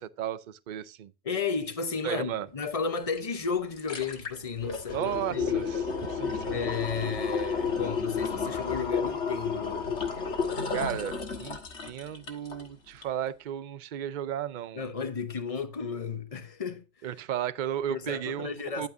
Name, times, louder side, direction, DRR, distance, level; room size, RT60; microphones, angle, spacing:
voice 1, 0.0-1.1 2.0-2.5 4.9-6.6 10.7-14.8 17.0-18.5 18.8-18.9, right 10 dB, 50° right, 0.6 m, -34 dB
voice 2, 1.2-5.7 6.5-10.0 14.7-16.8 17.9-18.9, left 5 dB, 35° left, 0.9 m, -33 dB
sound 1, 3.2-3.3 3.6-12.7 13.0-13.1, left 5 dB, 70° left, 1.8 m, -32 dB
10.5 x 9.1 x 2.6 m
omnidirectional pair, 1.2 m